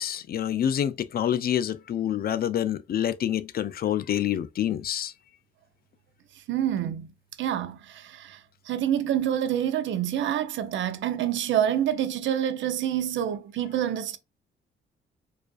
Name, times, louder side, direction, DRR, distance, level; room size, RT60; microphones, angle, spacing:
voice 1, 0.0-5.1, left 10 dB, 50° left, 0.4 m, -27 dB
voice 2, 6.5-7.1 7.4-8.4 8.7-14.2, right 10 dB, 70° right, 0.6 m, -27 dB
4.6 x 2.5 x 2.4 m
cardioid pair, 90°, 20 cm